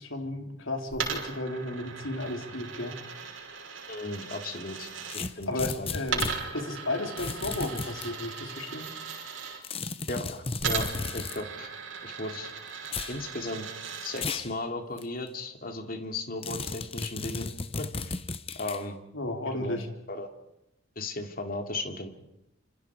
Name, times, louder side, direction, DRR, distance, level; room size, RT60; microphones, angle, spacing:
voice 1, 0.0-3.0 5.2-8.9 19.1-19.9, left 1 dB, 80° left, 4 dB, 3.8 m, -34 dB
Coin (dropping), 0.9-5.2 6.1-9.6 10.6-14.2, right 6 dB, 80° right, 6.1 m, -37 dB
voice 2, 3.9-5.5 5.8-5.9 10.1-10.9 11.1-11.7 12.0-12.5 13.1-13.7 14.0-17.5 17.8-18.1 18.5-19.0 19.5-19.8 20.1-20.3 21.0-22.1, left 2 dB, 45° left, 5 dB, 2.8 m, -36 dB
sound 1, 5.1-6.4 7.2-8.1 9.6-11.4 12.8-13.2 14.2-14.5 15.0-15.1 16.4-18.8, left 4 dB, 30° left, 1.0 m, -34 dB
28.5 x 26.5 x 4.9 m, 0.83 s
head